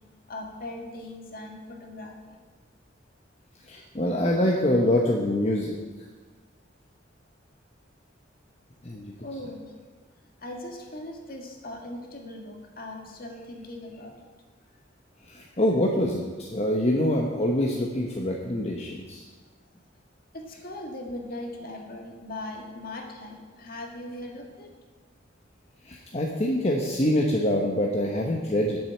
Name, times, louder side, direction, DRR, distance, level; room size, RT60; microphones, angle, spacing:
voice 1, 0.3-2.1 9.2-9.7 10.4-14.1 20.3-24.7, left 1 dB, 50° left, 1 dB, 1.9 m, -39 dB
voice 2, 3.7-5.8 8.8-9.1 15.3-19.2 25.8-28.8, left 1 dB, 35° left, -1 dB, 1.0 m, -25 dB
9.3 x 7.6 x 7.8 m, 1.4 s
head